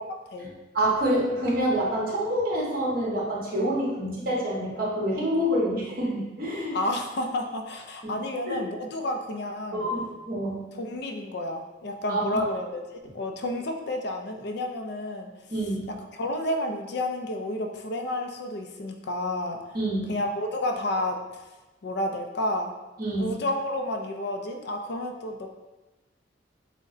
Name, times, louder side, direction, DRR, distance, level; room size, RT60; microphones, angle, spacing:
voice 1, 0.7-6.7 8.4-8.6 9.7-10.6 12.1-12.4 15.5-15.9 19.7-20.1 23.0-23.3, right 1 dB, 50° right, -5 dB, 1.4 m, -27 dB
voice 2, 6.7-9.9 10.7-15.3 16.1-19.6 20.1-21.4 21.8-22.7 23.2-25.5, left 1 dB, 55° left, 4 dB, 0.5 m, -30 dB
6.4 x 2.2 x 3.8 m, 1.1 s
head